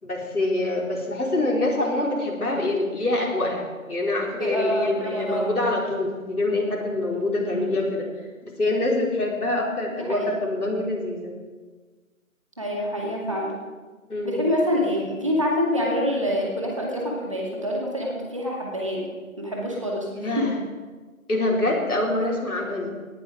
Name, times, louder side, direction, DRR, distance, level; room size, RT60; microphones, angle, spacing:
voice 1, 0.0-8.1 8.4-11.3 14.1-14.4 20.1-20.5 21.3-22.9, left 2 dB, 90° left, -2 dB, 4.6 m, -25 dB
voice 2, 4.4-5.6 7.4-7.8 9.9-10.2 12.6-13.5 14.2-19.1 19.4-20.5, equal, 20° right, -2 dB, 2.1 m, -26 dB
18.5 x 11.0 x 5.1 m, 1.4 s
figure-of-eight pair, 180°, 43 cm